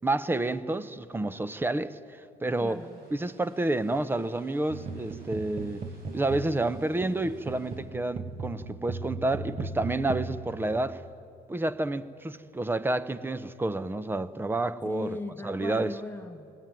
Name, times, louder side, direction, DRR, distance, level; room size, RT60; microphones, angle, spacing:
voice 1, 0.0-2.0 2.4-2.8 3.1-5.8 6.1-11.0 11.5-15.1 15.4-16.0, right 2 dB, 10° right, 0.8 m, -29 dB
sound 1, 2.5-7.8, right 1 dB, 65° right, 6.5 m, -60 dB
voice 2, 2.6-3.1 14.8-16.6, left 3 dB, 10° left, 1.2 m, -38 dB
sound 2, 4.7-11.3, right 3 dB, 40° right, 1.2 m, -38 dB
21.5 x 19.0 x 9.3 m
cardioid pair, 110°, 17 cm